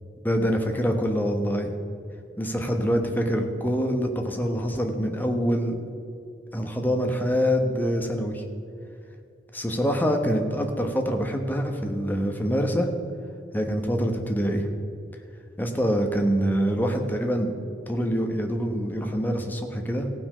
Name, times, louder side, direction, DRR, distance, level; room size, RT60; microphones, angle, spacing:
voice 1, 0.2-1.7 2.4-5.8 6.5-8.4 9.5-12.9 13.5-14.7 15.6-20.1, equal, 10° left, 3 dB, 1.0 m, -25 dB
16.0 x 6.1 x 5.6 m, 2.5 s
head